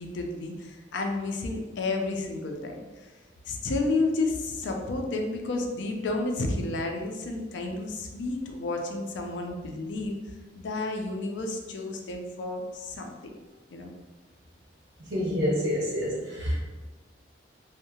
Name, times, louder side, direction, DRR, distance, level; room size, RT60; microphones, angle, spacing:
voice 1, 0.0-2.7 3.5-10.2 10.6-13.1 13.7-13.9, left 2 dB, 75° left, 2 dB, 0.4 m, -31 dB
voice 2, 15.1-16.6, equal, 85° right, -5 dB, 0.9 m, -27 dB
2.6 x 2.0 x 2.7 m, 1.2 s
head